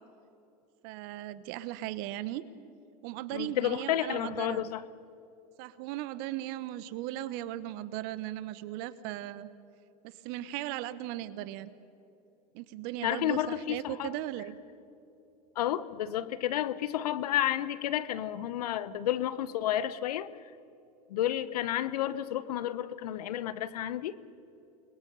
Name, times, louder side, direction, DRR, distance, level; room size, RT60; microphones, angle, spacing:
voice 1, 0.8-2.4 3.0-4.7 5.6-9.5 10.0-11.7 12.5-14.6, right 14 dB, 50° right, 1.2 m, -37 dB
voice 2, 3.3-4.8 13.0-14.1 15.6-20.3 21.1-24.1, left 12 dB, 70° left, 0.9 m, -31 dB
30.0 x 21.5 x 5.6 m
hypercardioid pair, 90°, 21 cm